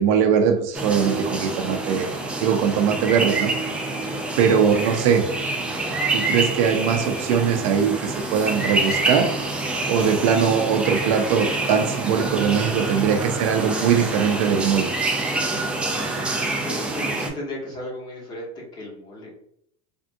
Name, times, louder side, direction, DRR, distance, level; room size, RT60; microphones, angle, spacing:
voice 1, 0.0-2.1 2.4-3.5 4.4-5.2 6.1-9.3 9.9-14.9, right 7 dB, 65° right, 6 dB, 0.5 m, -21 dB
sound 1, 0.7-17.3, right 2 dB, 5° right, 0.4 m, -27 dB
voice 2, 16.6-19.3, left 1 dB, 25° left, -3 dB, 1.0 m, -35 dB
3.3 x 2.5 x 2.5 m, 0.69 s
cardioid pair, 160°, 18 cm